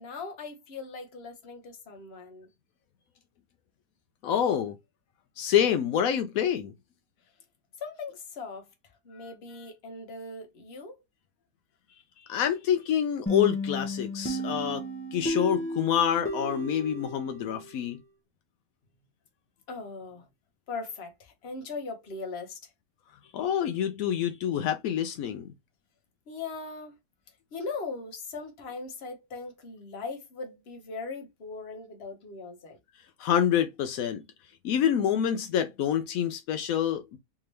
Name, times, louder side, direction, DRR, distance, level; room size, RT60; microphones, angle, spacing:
voice 1, 0.0-2.5 7.8-11.0 19.7-20.3 20.7-22.7 26.3-26.9 27.5-32.8, left 4 dB, 50° left, 1.1 m, -39 dB
voice 2, 4.2-4.8 5.4-6.7 12.2-14.8 15.1-18.0 23.3-25.5 33.2-34.2 34.6-37.2, left 9 dB, 80° left, 1.0 m, -27 dB
sound 1, 13.3-17.9, left 1 dB, 20° left, 0.4 m, -33 dB
3.4 x 2.9 x 3.1 m
omnidirectional pair, 1.5 m